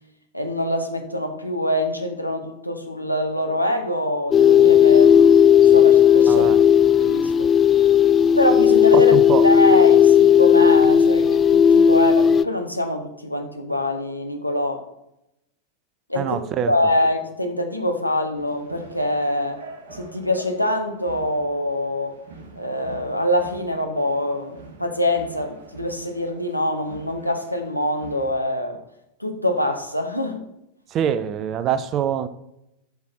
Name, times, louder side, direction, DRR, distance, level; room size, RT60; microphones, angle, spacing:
voice 1, 0.3-5.3 5.7-6.5 7.0-7.3 8.4-9.1 9.4-14.8 16.1-16.4 16.7-19.6 19.9-22.1 22.6-28.8 29.2-30.4, left 1 dB, 90° left, 4 dB, 1.3 m, -24 dB
sound 1, 4.3-12.4, left 8 dB, 25° left, 0.3 m, -14 dB
voice 2, 6.3-6.6 8.9-9.4 16.2-16.7 30.9-32.3, right 9 dB, 30° right, 13 dB, 0.6 m, -24 dB
sound 2, 18.3-28.3, right 3 dB, 55° right, 1.9 m, -45 dB
10.0 x 6.3 x 4.6 m, 0.84 s
figure-of-eight pair, 90°, 0 cm